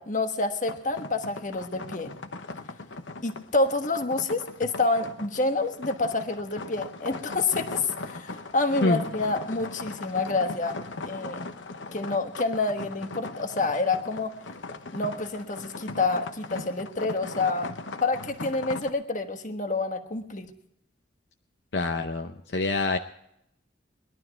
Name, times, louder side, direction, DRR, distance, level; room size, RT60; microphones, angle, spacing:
voice 1, 0.0-2.1 3.2-10.8 11.0-11.4 11.9-14.3 14.9-17.7 18.0-20.5, left 3 dB, 40° left, 7 dB, 1.3 m, -28 dB
sound 1, 0.6-18.9, left 3 dB, 85° left, 1.0 m, -39 dB
voice 2, 21.7-23.0, left 2 dB, 65° left, 5 dB, 0.8 m, -26 dB
20.0 x 12.0 x 4.5 m, 0.78 s
head